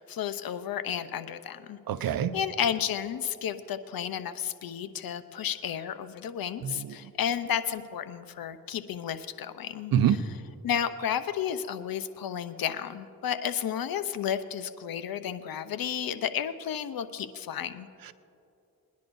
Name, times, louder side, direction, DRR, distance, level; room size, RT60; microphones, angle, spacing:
voice 1, 0.0-10.2 10.6-17.9, left 9 dB, 70° left, 12 dB, 0.8 m, -32 dB
voice 2, 1.9-2.4 6.6-7.0 9.9-10.2 18.1-18.2, right 9 dB, 70° right, 13 dB, 0.7 m, -26 dB
22.0 x 10.5 x 2.7 m, 2.7 s
supercardioid pair, 40°, 36 cm